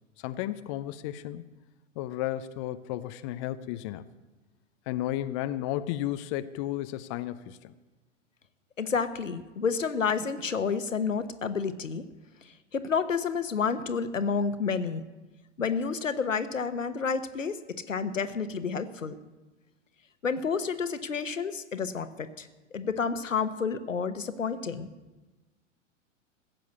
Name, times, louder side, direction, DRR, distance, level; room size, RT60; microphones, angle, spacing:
voice 1, 0.2-1.4 2.0-4.1 4.9-7.7, left 13 dB, 25° left, 11 dB, 0.4 m, -33 dB
voice 2, 8.8-12.1 12.7-15.0 15.6-17.6 17.9-19.2 20.2-22.5 22.7-24.9, left 5 dB, 80° left, 11 dB, 1.0 m, -30 dB
15.5 x 7.5 x 8.2 m, 1.2 s
figure-of-eight pair, 100°, 38 cm